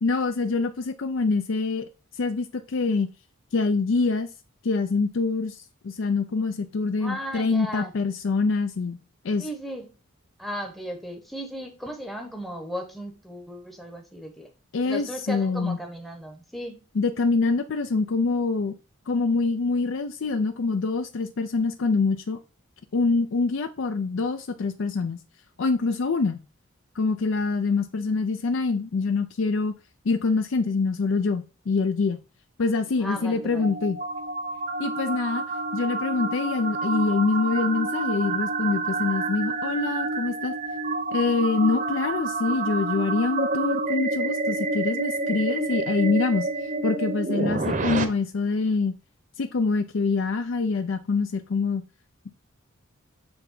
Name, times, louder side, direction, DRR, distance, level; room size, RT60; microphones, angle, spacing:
voice 1, 0.0-1.9 2.1-3.1 3.5-4.3 4.6-9.0 9.2-9.5 14.7-15.8 17.0-18.8 19.1-22.4 22.9-25.2 25.6-26.4 26.9-29.7 30.1-32.2 32.6-34.0 34.8-35.4 35.7-40.6 41.1-48.9 49.4-51.8, left 4 dB, 60° left, 0.4 m, -25 dB
voice 2, 7.0-7.9 9.4-9.9 10.4-14.5 14.8-16.8 33.0-33.8 47.6-47.9, equal, ahead, 0.8 m, -36 dB
sound 1, 33.0-48.0, right 3 dB, 35° right, 0.8 m, -29 dB
7.0 x 3.4 x 5.4 m
head